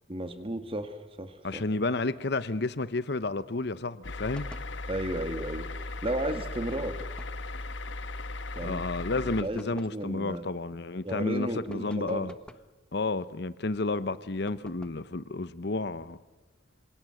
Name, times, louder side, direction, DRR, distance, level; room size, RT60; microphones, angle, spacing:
voice 1, 0.1-1.6 4.9-5.7 6.0-7.0 8.6-8.8 9.4-10.5 11.0-12.3, right 1 dB, 30° right, 1.8 m, -34 dB
voice 2, 1.4-4.5 8.6-12.3 12.9-16.2, left 3 dB, 60° left, 0.9 m, -31 dB
sound 1, 4.0-9.4, left 2 dB, 80° left, 1.4 m, -37 dB
sound 2, 4.3-4.8 6.7-7.5 9.0-10.0 11.7-12.7 14.5-15.1, equal, 5° left, 1.2 m, -51 dB
27.5 x 27.5 x 7.8 m
head